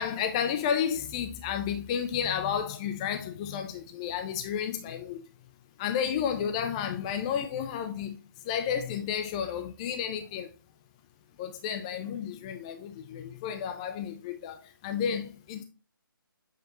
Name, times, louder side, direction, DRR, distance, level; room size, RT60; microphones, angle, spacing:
voice 1, 0.0-5.2 5.8-8.2 8.5-10.5 11.4-14.5 14.8-15.6, left 8 dB, 15° left, 0.3 m, -31 dB
7.4 x 5.1 x 3.0 m
hypercardioid pair, 155°, 12 cm